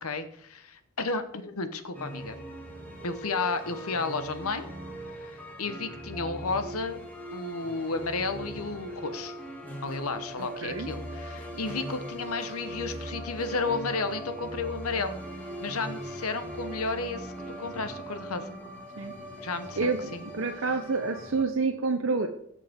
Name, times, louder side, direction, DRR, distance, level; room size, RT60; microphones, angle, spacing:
voice 1, 0.0-2.4 3.0-4.7 5.2-7.0 7.3-9.3 9.8-15.1 15.6-17.3 17.6-18.5 19.4-20.2, left 4 dB, 85° left, 10 dB, 1.0 m, -32 dB
sound 1, 1.9-21.4, right 1 dB, 5° left, 2.3 m, -40 dB
voice 2, 19.8-22.3, right 4 dB, 60° right, 4 dB, 0.8 m, -28 dB
17.0 x 6.5 x 3.6 m, 0.72 s
head